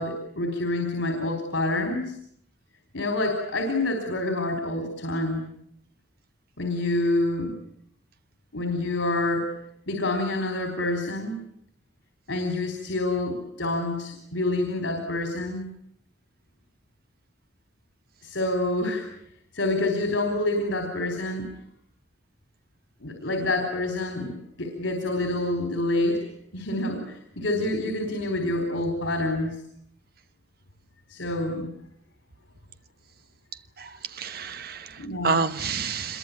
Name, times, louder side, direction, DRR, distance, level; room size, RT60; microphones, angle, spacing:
voice 1, 0.0-2.1 2.9-5.5 6.6-7.6 8.5-9.5 9.9-11.4 12.3-15.6 18.2-19.1 19.5-21.5 23.0-26.3 26.5-29.6 31.1-31.7 35.0-35.4, left 2 dB, 90° left, 4.3 m, -27 dB
voice 2, 33.8-36.2, right 5 dB, 55° right, 1.1 m, -29 dB
26.0 x 22.5 x 8.6 m
head